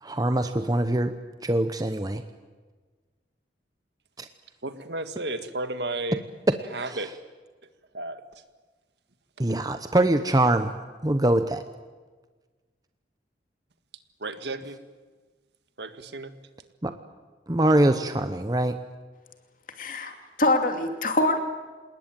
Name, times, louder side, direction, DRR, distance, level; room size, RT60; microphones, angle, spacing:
voice 1, 0.0-1.2 1.4-2.2 4.2-4.3 6.9-7.0 9.4-10.7 11.0-11.6 16.8-16.9 17.5-18.8, right 1 dB, 20° right, 9 dB, 0.9 m, -23 dB
voice 2, 4.6-6.2 6.7-7.1 7.9-8.2 14.2-14.8 15.8-16.3, right 2 dB, 75° right, 10 dB, 1.7 m, -33 dB
voice 3, 19.8-21.4, left 2 dB, 50° left, 5 dB, 2.7 m, -24 dB
27.5 x 19.5 x 9.1 m, 1.4 s
head